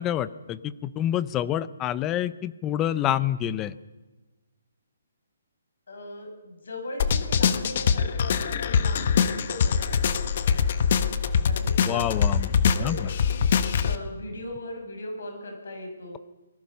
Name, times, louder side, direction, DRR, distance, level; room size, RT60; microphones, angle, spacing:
voice 1, 0.0-3.7 11.9-13.1, left 11 dB, 15° left, 16 dB, 0.6 m, -28 dB
voice 2, 5.9-10.8 11.4-12.2 12.7-16.2, left 1 dB, 75° left, 3 dB, 6.8 m, -39 dB
sound 1, 7.0-14.0, left 6 dB, 40° left, 1.3 m, -23 dB
28.5 x 19.5 x 5.5 m, 1.2 s
hypercardioid pair, 170°, 0 cm